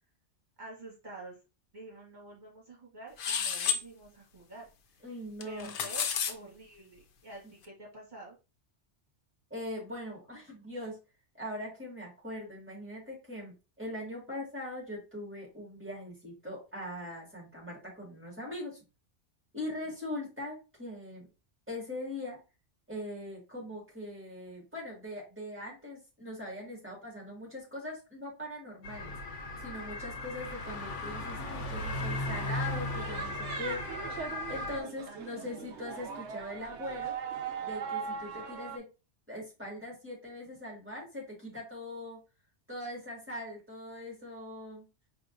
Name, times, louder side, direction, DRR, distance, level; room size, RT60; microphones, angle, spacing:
voice 1, 0.6-1.4 1.7-5.0 5.4-8.4 19.8-19.9 35.0-35.7, right 2 dB, 40° right, -4 dB, 1.5 m, -48 dB
sound 1, 3.2-3.8 5.4-6.3, left 7 dB, 60° left, 0.6 m, -31 dB
voice 2, 5.0-5.7 9.5-11.0 11.3-18.8 19.5-21.3 21.7-22.4 22.9-29.2 29.6-33.8 34.5-37.1 37.6-38.8 39.3-42.2 42.7-44.8, left 1 dB, 10° right, -3 dB, 1.9 m, -41 dB
sound 2, 28.8-34.8, left 2 dB, 85° left, 1.1 m, -36 dB
sound 3, 32.4-38.8, right 6 dB, 75° right, 0.9 m, -40 dB
4.8 x 2.8 x 2.5 m, 0.30 s
omnidirectional pair, 1.2 m